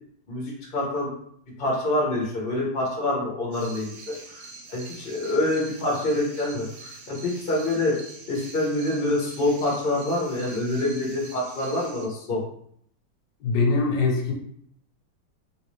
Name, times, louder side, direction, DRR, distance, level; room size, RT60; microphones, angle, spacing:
voice 1, 0.3-1.1 1.6-4.4 4.7-8.0 8.3-12.4, left 1 dB, 40° left, -3 dB, 0.8 m, -26 dB
sound 1, 3.5-12.1, right 3 dB, 80° right, 0.7 m, -44 dB
voice 2, 13.4-14.3, left 4 dB, 75° left, 1 dB, 1.2 m, -22 dB
3.2 x 2.6 x 3.0 m, 0.68 s
omnidirectional pair, 2.0 m